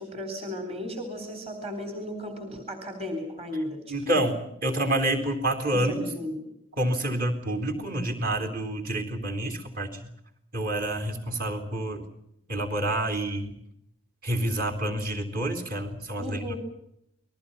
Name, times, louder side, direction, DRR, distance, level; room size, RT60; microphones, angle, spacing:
voice 1, 0.0-3.8 4.1-4.2 5.7-6.4 16.2-16.6, left 1 dB, 30° right, 7 dB, 3.9 m, -35 dB
voice 2, 3.9-6.0 6.8-10.1 10.5-12.0 12.5-13.6 14.2-16.6, right 1 dB, 45° right, 5 dB, 3.8 m, -28 dB
29.5 x 21.5 x 5.6 m, 0.77 s
head